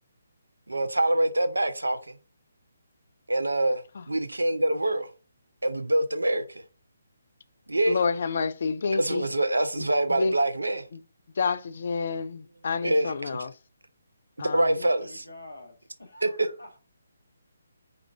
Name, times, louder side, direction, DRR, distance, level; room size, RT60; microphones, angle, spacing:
voice 1, 0.7-2.0 3.3-5.1 5.6-6.6 7.7-8.0 8.9-10.8 12.8-13.5 14.4-15.2 16.2-16.5, right 1 dB, 85° right, 0.6 m, -25 dB
voice 2, 7.9-9.3 9.8-10.4 10.9-11.0 11.4-13.5 14.4-14.7, left 5 dB, 55° left, 0.4 m, -29 dB
voice 3, 14.7-16.8, left 2 dB, 80° left, 1.3 m, -47 dB
4.9 x 2.4 x 3.5 m
figure-of-eight pair, 145°, 0 cm